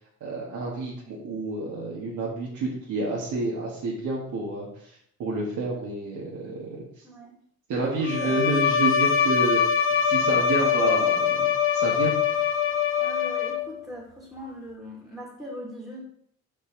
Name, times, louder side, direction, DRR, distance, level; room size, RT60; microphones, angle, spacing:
voice 1, 0.2-6.9 7.7-9.6 10.0-12.5, right 2 dB, 80° right, -6 dB, 1.6 m, -29 dB
voice 2, 7.7-8.4 13.0-16.0, equal, ahead, -3 dB, 2.3 m, -40 dB
Bowed string instrument, 8.0-13.9, left 7 dB, 45° left, 0.6 m, -23 dB
5.3 x 5.3 x 3.8 m, 0.65 s
cardioid pair, 90°, 30 cm